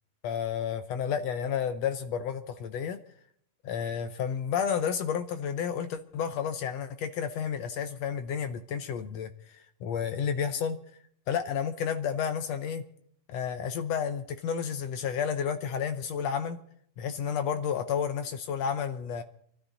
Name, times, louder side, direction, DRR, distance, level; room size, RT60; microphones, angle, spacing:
voice 1, 0.2-3.0 3.6-9.3 9.8-10.8 11.3-12.8 13.3-16.6 17.0-19.2, left 7 dB, 75° left, 10 dB, 1.6 m, -31 dB
24.5 x 13.0 x 4.0 m, 0.65 s
omnidirectional pair, 3.9 m